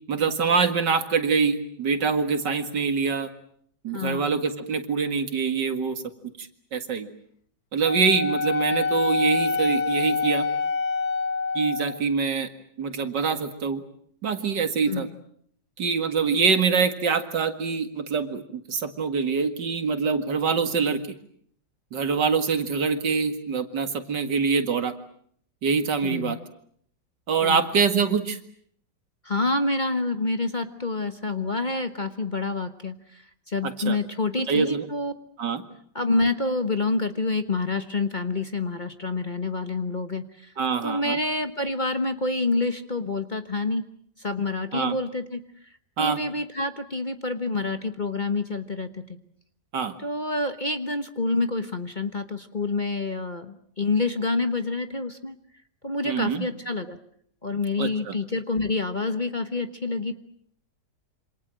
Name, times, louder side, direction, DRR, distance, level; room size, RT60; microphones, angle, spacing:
voice 1, 0.1-3.3 3.8-6.0 6.4-7.1 7.7-10.5 11.5-12.5 12.8-13.8 14.2-15.1 15.8-21.0 21.9-24.9 25.6-26.4 27.3-28.4 33.6-34.0 34.5-34.9 35.4-35.6 40.6-41.2 44.7-45.0 46.0-46.2 49.7-49.9 56.0-56.5 57.8-58.2, right 5 dB, 75° right, 8 dB, 2.6 m, -24 dB
voice 2, 3.9-4.4 14.9-15.2 26.0-26.4 27.4-27.7 29.2-35.1 35.9-40.5 40.8-43.9 44.2-45.4 46.0-49.1 50.0-55.4 55.8-57.0 57.4-60.1, left 3 dB, 30° left, 8 dB, 1.2 m, -27 dB
Wind instrument woodwind instrument, 7.8-12.0, left 4 dB, 60° left, 1.8 m, -26 dB
27.5 x 26.0 x 7.6 m, 0.65 s
omnidirectional pair, 1.9 m